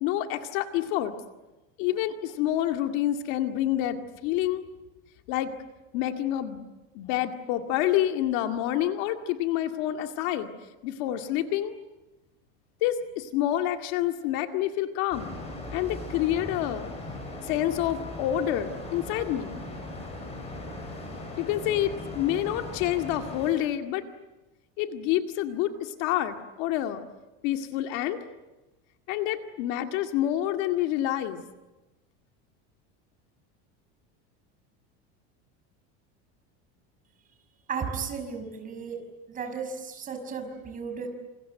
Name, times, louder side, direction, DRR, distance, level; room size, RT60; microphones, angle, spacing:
voice 1, 0.0-1.1 1.8-4.6 5.3-5.5 5.9-6.6 6.9-10.5 10.8-11.8 12.8-15.4 15.7-16.9 17.4-19.6 21.4-24.1 24.8-27.0 27.4-28.2 29.1-31.4, left 12 dB, 60° left, 6 dB, 2.1 m, -28 dB
sound 1, 15.1-23.5, left 1 dB, 20° left, 7.9 m, -39 dB
voice 2, 37.7-39.0 39.3-41.1, right 6 dB, 25° right, 5 dB, 5.8 m, -34 dB
28.0 x 27.5 x 7.9 m, 1.1 s
cardioid pair, 165°, 33 cm